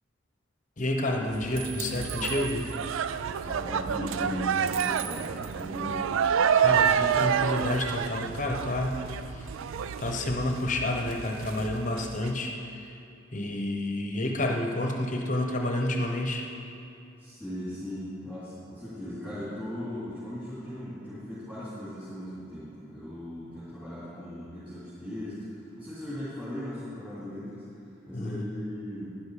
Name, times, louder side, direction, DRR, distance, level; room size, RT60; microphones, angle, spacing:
voice 1, 0.8-2.6 6.6-9.5 10.0-13.0 13.3-16.5 28.1-28.5, left 1 dB, 40° left, 2 dB, 0.9 m, -30 dB
sound 1, 1.3-12.3, right 7 dB, 90° right, 0.4 m, -29 dB
voice 2, 3.4-6.1 17.2-29.2, equal, 5° right, -12 dB, 3.2 m, -38 dB
12.0 x 10.5 x 4.9 m, 2.7 s
head